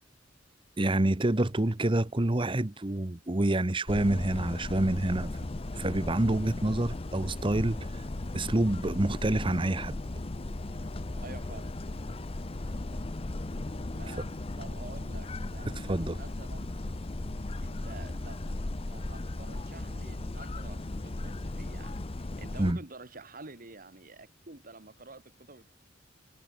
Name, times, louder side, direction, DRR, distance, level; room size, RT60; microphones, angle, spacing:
voice 1, 0.8-5.3 5.7-7.9 8.3-10.0 15.9-16.2 22.6-22.8, right 1 dB, 25° right, 0.9 m, -27 dB
sound 1, 3.9-22.7, left 2 dB, 30° left, 0.7 m, -37 dB
voice 2, 11.2-11.7 13.9-14.3 14.6-16.7 17.6-18.6 18.9-25.7, right 3 dB, 45° right, 2.1 m, -49 dB
head